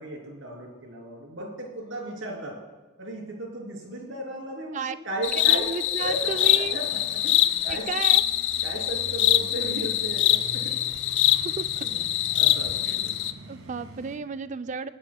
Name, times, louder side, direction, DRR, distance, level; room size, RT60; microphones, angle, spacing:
voice 1, 0.0-2.6 3.0-5.7 6.0-7.9 8.6-10.8 11.8-12.0 12.3-13.1, right 1 dB, 65° right, -1 dB, 3.1 m, -36 dB
sound 1, 5.2-13.3, left 13 dB, 55° left, 0.4 m, -24 dB
voice 2, 5.3-6.8 7.6-8.2 11.3-11.9 12.9-13.0 13.5-14.9, right 5 dB, 35° right, 12 dB, 0.3 m, -33 dB
sound 2, 6.0-14.2, right 1 dB, 90° right, 1.6 m, -45 dB
21.5 x 10.5 x 2.3 m, 1.3 s
head